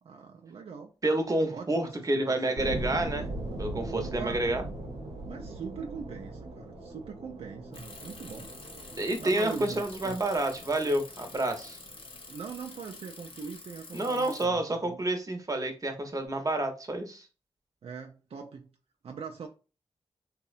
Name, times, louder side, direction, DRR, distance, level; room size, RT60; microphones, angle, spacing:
voice 1, 0.0-0.9 1.5-2.8 3.9-4.5 5.3-8.5 9.2-10.2 12.3-15.0 17.8-18.7 19.0-19.5, right 6 dB, 70° right, 2 dB, 0.4 m, -42 dB
voice 2, 1.0-3.3 3.6-4.6 9.0-11.8 13.9-17.3, right 1 dB, 35° right, 5 dB, 0.7 m, -29 dB
sound 1, 2.6-13.3, right 2 dB, 90° right, 0.7 m, -40 dB
Bicycle, 7.7-14.4, left 3 dB, 60° left, 0.6 m, -48 dB
2.7 x 2.1 x 2.4 m, 0.33 s
cardioid pair, 45°, 10 cm